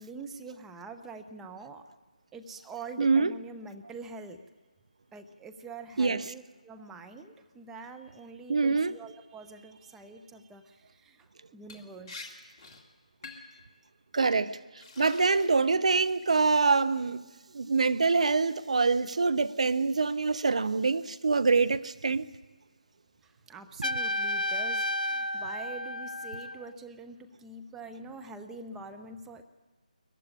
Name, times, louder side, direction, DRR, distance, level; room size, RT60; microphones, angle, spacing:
voice 1, 0.0-1.8 2.3-4.4 5.1-12.3 23.2-29.4, right 3 dB, 5° right, 0.7 m, -45 dB
voice 2, 3.0-3.3 6.0-6.2 8.5-8.9 14.1-14.6 15.0-17.3 17.5-22.3, right 4 dB, 50° right, 0.7 m, -25 dB
Liquid, 11.7-11.8 12.1-12.3 12.6-12.8 13.2-13.6 14.2-14.4 14.8-15.7 16.1-16.5, left 3 dB, 25° left, 2.1 m, -46 dB
Trumpet, 23.8-26.7, left 1 dB, 80° left, 0.7 m, -32 dB
20.5 x 14.5 x 9.9 m
figure-of-eight pair, 155°, 4 cm